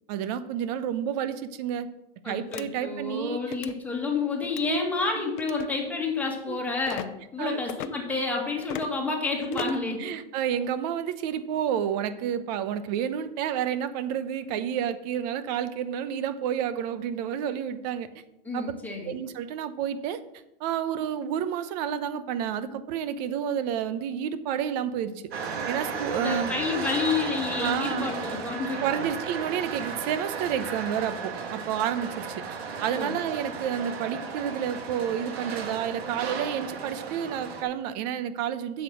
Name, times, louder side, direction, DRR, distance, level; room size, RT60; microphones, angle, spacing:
voice 1, 0.1-1.9 2.2-3.5 4.6-4.8 5.2-5.3 6.5-6.6 7.4-7.6 9.4-18.1 18.5-18.7 19.0-20.2 20.6-25.1 25.7-26.6 27.6-28.1 28.8-32.4 32.8-38.8, right 9 dB, 40° right, 13 dB, 0.9 m, -30 dB
voice 2, 2.2-10.1 18.4-19.1 26.1-29.1 32.9-33.1, left 4 dB, 5° left, -1 dB, 2.0 m, -30 dB
sound 1, 2.5-2.7 3.4-3.7 4.4-4.7 5.4-5.7 6.8-7.1 7.7-7.9 8.6-8.9 9.5-9.9, left 13 dB, 50° left, 0.7 m, -37 dB
sound 2, 25.3-37.6, right 5 dB, 80° right, 2.0 m, -35 dB
8.3 x 7.4 x 6.1 m, 0.89 s
supercardioid pair, 150°, 31 cm